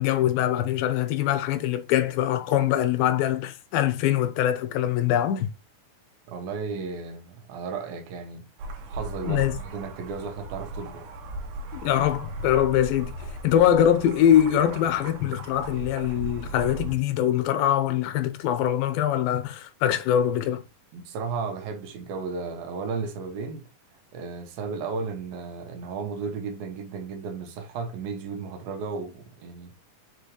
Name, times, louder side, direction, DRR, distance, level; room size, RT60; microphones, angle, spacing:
voice 1, 0.0-5.5 9.2-9.6 11.7-13.1 13.4-20.6, left 11 dB, 85° left, 2.5 m, -23 dB
voice 2, 6.3-8.5 8.9-11.1 20.9-23.6 24.1-29.7, right 5 dB, 80° right, 2.8 m, -34 dB
sound 1, 8.6-16.9, right 2 dB, 65° right, 2.3 m, -37 dB
7.0 x 4.9 x 3.1 m
omnidirectional pair, 4.3 m